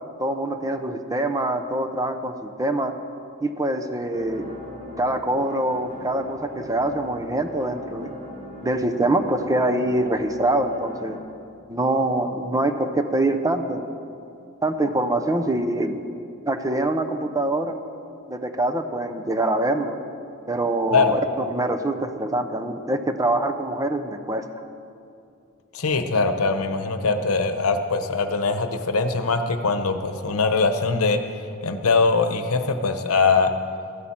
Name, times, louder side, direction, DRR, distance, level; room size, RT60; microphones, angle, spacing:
voice 1, 0.2-2.9 3.4-4.5 5.0-8.2 8.6-11.2 11.7-13.8 14.6-16.1 16.5-17.8 18.3-20.0 20.5-24.4, right 1 dB, 15° right, 8 dB, 0.6 m, -24 dB
sound 1, 4.1-11.2, equal, 35° right, 1.8 m, -40 dB
voice 2, 25.7-31.2 31.6-33.5, left 4 dB, 85° left, 8 dB, 0.9 m, -22 dB
14.0 x 13.0 x 4.3 m, 2.5 s
head